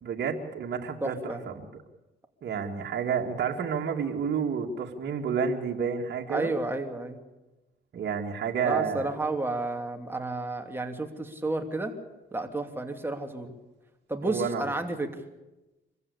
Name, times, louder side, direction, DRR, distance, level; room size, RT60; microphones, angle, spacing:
voice 1, 0.0-1.5 2.4-6.5 7.9-9.1 14.2-14.7, right 6 dB, 60° right, 1 dB, 2.4 m, -30 dB
voice 2, 1.0-1.4 6.3-7.2 8.6-11.9 12.3-13.5 14.1-15.2, right 2 dB, 10° right, 4 dB, 2.9 m, -31 dB
24.5 x 15.5 x 8.6 m, 1.0 s
cardioid pair, 90°, 20 cm